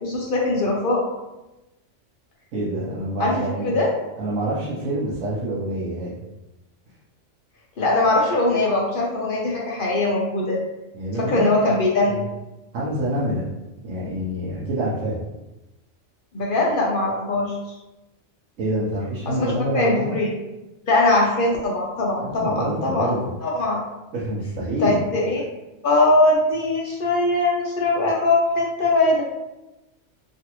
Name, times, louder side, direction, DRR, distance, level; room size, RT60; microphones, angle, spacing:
voice 1, 0.0-1.0 3.2-3.9 7.8-10.6 11.2-12.1 16.3-17.6 19.3-20.3 20.9-23.1 23.4-23.8 24.8-25.4 25.8-29.2, left 2 dB, 55° left, -3 dB, 0.6 m, -21 dB
voice 2, 2.5-3.7 4.2-6.2 10.9-11.8 12.1-12.2 12.7-13.5 13.8-15.2 18.6-20.3 22.2-23.3 24.1-25.0, right 1 dB, 90° right, -8 dB, 1.1 m, -26 dB
3.2 x 2.4 x 2.9 m, 1.0 s
omnidirectional pair, 1.3 m